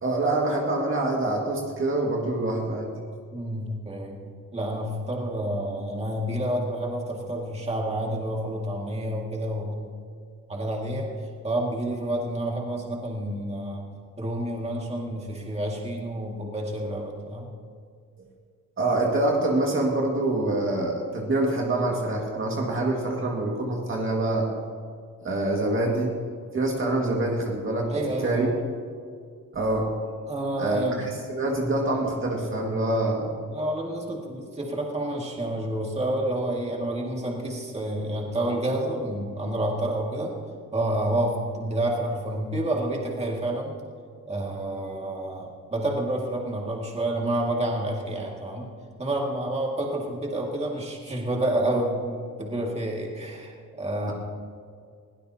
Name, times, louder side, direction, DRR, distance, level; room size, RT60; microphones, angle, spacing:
voice 1, 0.0-2.9 18.8-24.5 25.2-26.1 26.5-27.9 28.2-28.6 29.5-29.9 30.6-33.3, right 2 dB, 40° right, -1 dB, 2.0 m, -25 dB
voice 2, 3.3-9.9 10.5-11.1 11.4-13.9 14.2-17.5 27.0-27.2 27.9-28.5 30.3-31.0 33.5-40.3 40.7-43.8 44.3-48.7 49.0-54.1, right 1 dB, 20° right, -1 dB, 2.1 m, -29 dB
21.0 x 17.0 x 2.9 m, 2.2 s
wide cardioid pair, 160°, 33 cm